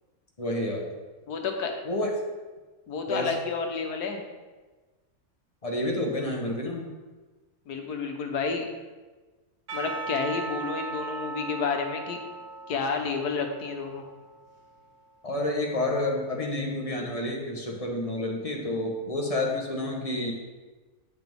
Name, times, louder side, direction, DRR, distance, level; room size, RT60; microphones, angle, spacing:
voice 1, 0.4-0.9 1.8-2.1 3.1-3.3 5.6-6.9 15.2-20.3, left 1 dB, 25° left, 0 dB, 1.1 m, -29 dB
voice 2, 1.3-1.7 2.9-4.2 7.7-8.7 9.7-12.2 12.7-14.0, left 5 dB, 85° left, 4 dB, 1.5 m, -30 dB
Percussion / Church bell, 9.7-14.9, right 3 dB, 75° right, 2.2 m, -38 dB
9.5 x 5.9 x 3.6 m, 1.3 s
omnidirectional pair, 1.6 m